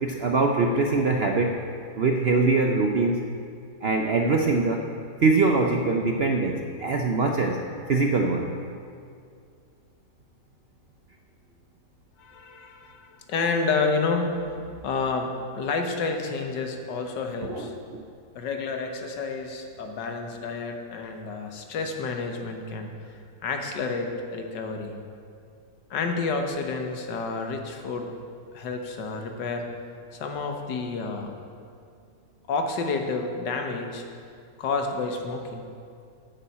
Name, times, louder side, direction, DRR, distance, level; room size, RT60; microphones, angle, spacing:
voice 1, 0.0-1.6 2.0-3.3 3.8-4.9 5.2-7.6 7.9-8.5 17.5-18.0, right 3 dB, 60° right, 2 dB, 0.6 m, -23 dB
voice 2, 12.2-17.7 18.4-22.9 23.4-24.9 25.9-28.1 28.5-29.7 30.1-31.3 32.5-34.0 34.6-35.7, left 4 dB, 85° left, 4 dB, 1.7 m, -30 dB
9.5 x 7.0 x 8.5 m, 2.3 s
omnidirectional pair, 1.8 m